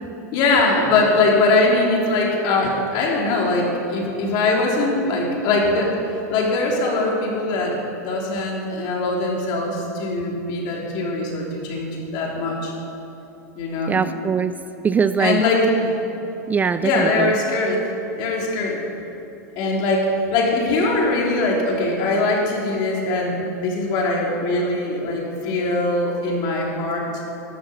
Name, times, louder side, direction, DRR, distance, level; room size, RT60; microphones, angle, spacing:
voice 1, 0.3-12.7 13.6-14.0 15.2-15.9 16.8-17.8 18.2-18.8 19.5-27.1, left 2 dB, 50° left, -1 dB, 3.5 m, -21 dB
voice 2, 13.9-14.5 14.8-15.4 16.5-17.3, right 6 dB, 15° right, 12 dB, 0.4 m, -21 dB
13.0 x 9.3 x 7.1 m, 3.0 s
hypercardioid pair, 110°, 10 cm